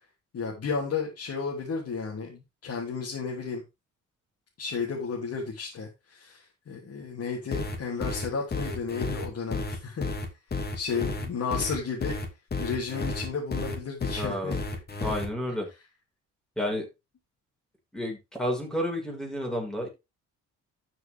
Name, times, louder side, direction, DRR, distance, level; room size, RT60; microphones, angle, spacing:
voice 1, 0.3-3.6 4.6-10.1 10.7-12.2 12.6-14.6, left 5 dB, 55° left, -2 dB, 3.1 m, -33 dB
sound 1, 7.5-15.3, left 3 dB, 30° left, 2.6 m, -32 dB
voice 2, 14.2-14.6 15.0-15.7 16.6-16.9 17.9-19.9, equal, ahead, 1 dB, 5.4 m, -31 dB
12.5 x 6.3 x 3.6 m, 0.25 s
cardioid pair, 90°, 30 cm